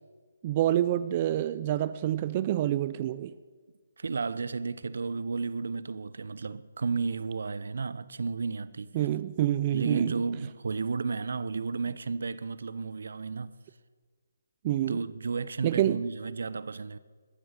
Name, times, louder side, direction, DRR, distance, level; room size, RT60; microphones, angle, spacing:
voice 1, 0.4-3.3 8.9-10.1 14.6-15.0 15.6-16.0, right 12 dB, 30° right, 0.4 m, -27 dB
voice 2, 4.0-9.0 9.7-13.5 14.9-17.0, right 4 dB, 70° right, 0.7 m, -33 dB
13.5 x 13.0 x 6.5 m
hypercardioid pair, 155°, 0 cm